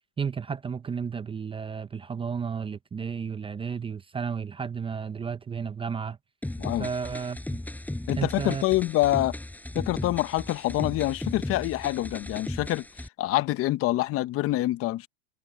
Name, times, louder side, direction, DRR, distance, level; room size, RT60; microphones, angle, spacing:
voice 1, 0.2-6.2 6.8-7.6 8.2-8.6, right 6 dB, 15° right, 0.8 m, -32 dB
sound 1, 6.4-13.1, left 1 dB, 5° left, 7.4 m, -36 dB
voice 2, 6.6-6.9 8.1-9.4 9.7-15.1, left 16 dB, 40° left, 1.1 m, -26 dB
hypercardioid pair, 110°, 35 cm